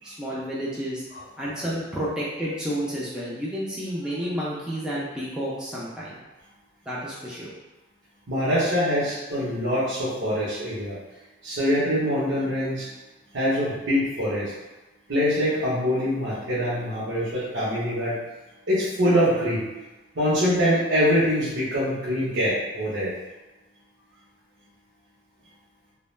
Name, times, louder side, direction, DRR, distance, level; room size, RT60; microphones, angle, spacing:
voice 1, 0.0-1.0 1.4-6.2 6.9-7.5, equal, 5° right, -8 dB, 0.4 m, -30 dB
voice 2, 8.3-11.0 11.4-12.9 13.3-14.5 15.1-18.2 18.7-19.6 20.1-23.1, equal, 80° right, -10 dB, 0.8 m, -24 dB
2.3 x 2.1 x 3.1 m, 1.1 s
head